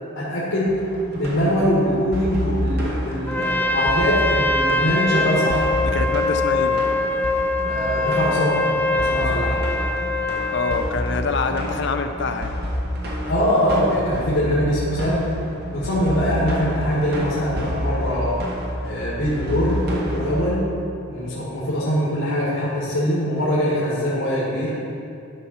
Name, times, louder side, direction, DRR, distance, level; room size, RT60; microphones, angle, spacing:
voice 1, 0.2-0.8 1.1-5.7 7.6-9.6 13.2-15.3 15.7-18.4 18.8-20.7 21.1-24.8, equal, 90° left, -7 dB, 2.0 m, -22 dB
sound 1, 0.7-20.5, equal, 55° right, 1.4 m, -29 dB
Trumpet, 3.3-10.9, left 2 dB, 10° left, 0.3 m, -23 dB
voice 2, 5.8-6.8 9.1-9.5 10.5-12.6, left 4 dB, 60° left, 6 dB, 0.6 m, -26 dB
12.0 x 5.6 x 4.3 m, 2.6 s
head